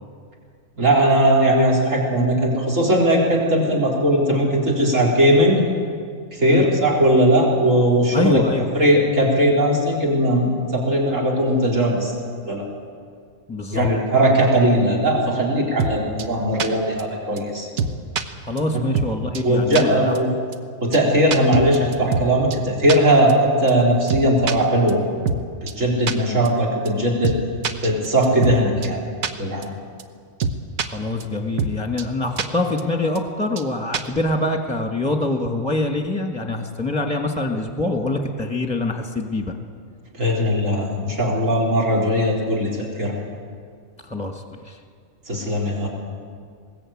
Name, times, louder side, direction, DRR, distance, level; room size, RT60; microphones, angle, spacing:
voice 1, 0.8-5.6 6.3-8.4 8.7-12.1 12.5-12.6 13.7-17.7 18.7-18.8 19.4-20.4 20.8-25.0 25.6-27.4 27.8-29.0 29.4-29.7 40.2-43.1 45.3-45.9, right 1 dB, 65° right, -2 dB, 4.0 m, -19 dB
voice 2, 8.1-8.7 13.5-13.9 18.4-20.2 26.3-26.4 30.8-39.6 44.0-44.8, left 2 dB, 5° left, 3 dB, 1.5 m, -25 dB
sound 1, 15.8-15.9 16.2-16.3 16.6-16.7 17.0-17.1 17.4-17.5 17.8-18.2 18.6-18.7 18.9-19.1 19.3-19.4 19.7-19.8 20.1-20.2 20.5-20.6 20.9-21.0 21.3-22.3 22.5-22.6 22.9-23.0 23.3-23.4 23.7-23.8 24.1-24.5 24.9-25.0 25.2-25.4 25.7-25.8 26.1-26.2 26.4-26.5 26.9-27.0 27.2-27.4 27.6-28.6 28.8-28.9 29.2-29.3 29.6-29.7 30.0-30.1 30.4-30.9 31.2-31.3 31.6-31.7 32.0-32.1 32.4-32.5 32.8-32.9 33.1-33.2 33.6-33.7 33.9-34.2, right 5 dB, 85° right, 1.5 m, -23 dB
21.0 x 19.0 x 8.6 m, 2.1 s
omnidirectional pair, 1.4 m